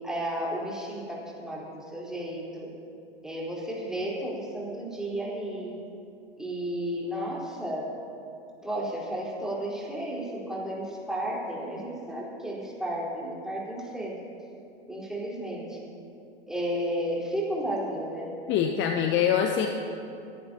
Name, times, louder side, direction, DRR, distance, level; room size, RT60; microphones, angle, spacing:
voice 1, 0.0-2.7 3.2-5.8 6.4-7.9 8.6-14.2 14.9-15.8 16.5-18.3, right 1 dB, ahead, -6 dB, 4.2 m, -33 dB
voice 2, 18.5-19.7, left 9 dB, 40° left, 4 dB, 0.9 m, -24 dB
29.5 x 11.0 x 2.9 m, 2.6 s
hypercardioid pair, 100°, 31 cm